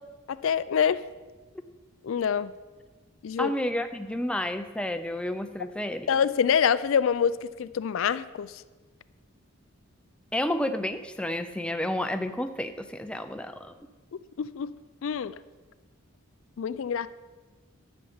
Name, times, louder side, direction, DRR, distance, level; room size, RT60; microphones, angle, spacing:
voice 1, 0.3-1.0 2.0-2.5 3.2-3.5 6.1-8.5 14.4-14.7 15.0-15.3 16.6-17.1, left 7 dB, 65° left, 15 dB, 0.4 m, -26 dB
voice 2, 3.4-6.1 10.3-13.7, left 1 dB, 5° left, 8 dB, 0.4 m, -30 dB
11.5 x 6.9 x 7.1 m, 1.3 s
head